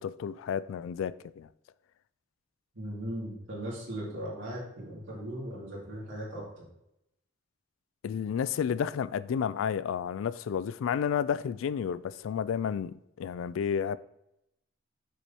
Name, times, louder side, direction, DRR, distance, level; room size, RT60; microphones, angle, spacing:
voice 1, 0.0-1.5 8.0-14.0, left 7 dB, 85° left, 0.3 m, -31 dB
voice 2, 2.7-6.6, right 1 dB, 70° right, 2.6 m, -38 dB
6.4 x 6.1 x 2.9 m
head